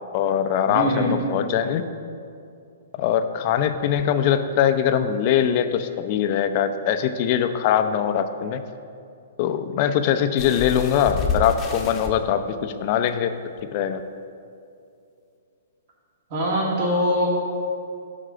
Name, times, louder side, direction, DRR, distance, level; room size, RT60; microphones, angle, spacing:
voice 1, 0.1-1.8 3.0-8.6 9.4-13.3 13.7-14.0, left 9 dB, 45° left, 9 dB, 0.5 m, -22 dB
voice 2, 0.7-1.2 16.3-17.3, equal, 45° right, -4 dB, 1.9 m, -22 dB
sound 1, 10.4-12.1 13.1-13.2 13.6-13.7, left 4 dB, 25° left, 0.9 m, -28 dB
10.5 x 3.7 x 6.7 m, 2.5 s
hypercardioid pair, 135°, 0 cm